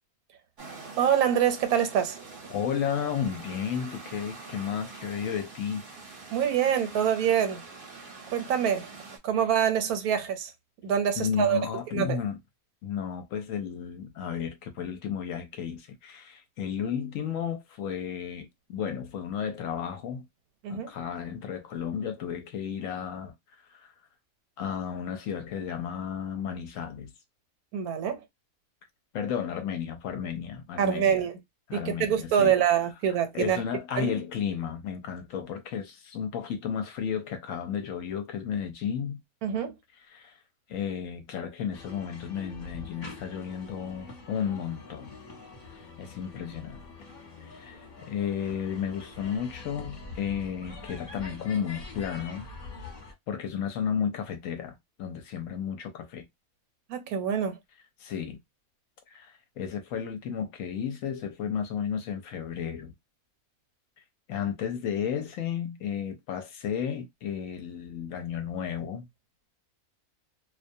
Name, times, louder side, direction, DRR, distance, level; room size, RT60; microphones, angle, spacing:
sound 1, 0.6-9.2, right 4 dB, 45° right, 0.8 m, -45 dB
voice 1, 1.0-2.2 6.3-7.6 8.3-8.9 9.2-10.5 10.8-11.6 11.9-12.2 20.6-20.9 27.7-28.2 30.8-31.4 31.7-33.6 34.0-34.1 39.4-39.7 56.9-57.6, right 8 dB, 80° right, 1.1 m, -25 dB
voice 2, 2.5-5.8 11.2-12.4 12.8-20.3 20.7-23.3 23.7-23.9 24.6-27.1 29.1-31.3 31.7-32.5 33.3-39.2 40.1-40.3 40.7-45.2 45.7-46.8 47.5-52.5 53.3-56.3 58.0-58.4 59.1-62.9 64.3-69.1, left 7 dB, 70° left, 0.9 m, -33 dB
sound 2, 41.7-53.1, left 3 dB, 35° left, 0.9 m, -45 dB
2.4 x 2.2 x 2.5 m
omnidirectional pair, 1.6 m